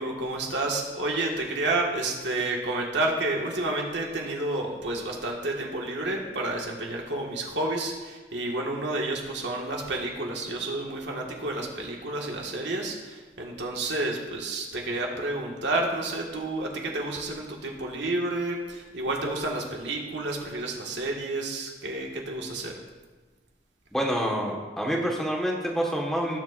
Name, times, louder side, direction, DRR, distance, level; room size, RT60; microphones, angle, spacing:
voice 1, 0.0-22.7, right 2 dB, 85° right, -1 dB, 1.7 m, -30 dB
voice 2, 23.9-26.4, equal, ahead, -2 dB, 1.5 m, -27 dB
19.5 x 7.1 x 2.5 m, 1.3 s
head